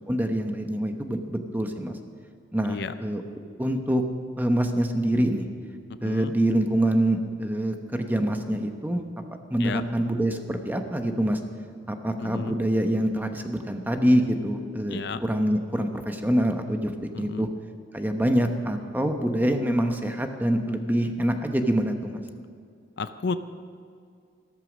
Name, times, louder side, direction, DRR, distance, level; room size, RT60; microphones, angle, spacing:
voice 1, 0.1-2.0 2.5-3.2 3.6-4.0 4.4-5.5 6.0-9.0 9.5-11.4 11.9-16.9 17.2-17.5 17.9-22.2, right 1 dB, 10° right, 5 dB, 0.9 m, -25 dB
voice 2, 6.0-6.3 9.6-9.8 12.2-12.6 14.9-15.2 17.1-17.5 23.0-23.4, left 4 dB, 55° left, 11 dB, 0.5 m, -32 dB
14.5 x 13.0 x 6.2 m, 2.3 s
head